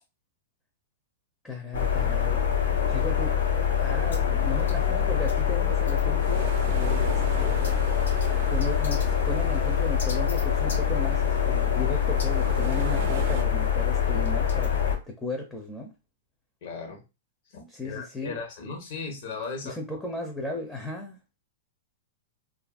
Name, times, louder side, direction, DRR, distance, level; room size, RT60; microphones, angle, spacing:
voice 1, 1.4-2.4 2.9-3.3 3.8-7.9 8.5-15.9 17.7-18.3 19.6-21.2, left 2 dB, 10° left, 0.5 m, -35 dB
sound 1, 1.7-15.0, left 8 dB, 90° left, 0.8 m, -24 dB
sound 2, 6.2-13.4, right 6 dB, 55° right, 0.5 m, -38 dB
voice 2, 16.6-17.0 17.5-19.8, left 4 dB, 60° left, 1.0 m, -37 dB
2.7 x 2.5 x 2.3 m
hypercardioid pair, 135°, 0 cm